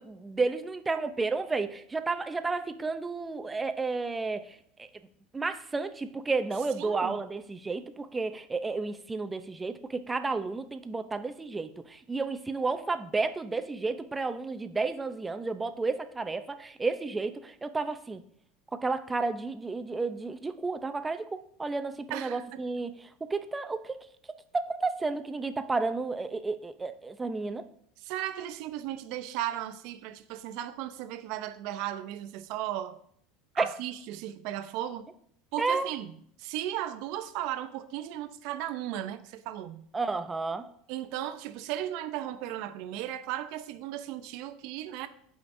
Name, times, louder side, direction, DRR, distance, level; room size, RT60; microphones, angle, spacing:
voice 1, 0.0-4.5 4.8-4.9 5.3-18.2 18.7-22.9 23.2-24.0 24.5-27.7 33.6-33.7 35.6-35.9 39.9-40.6, right 3 dB, 15° right, 0.6 m, -32 dB
voice 2, 6.8-7.2 22.1-22.6 28.0-33.0 33.5-35.1 35.5-39.9 40.9-45.1, right 12 dB, 65° right, 0.7 m, -36 dB
14.5 x 5.1 x 2.7 m
supercardioid pair, 130°, 0 cm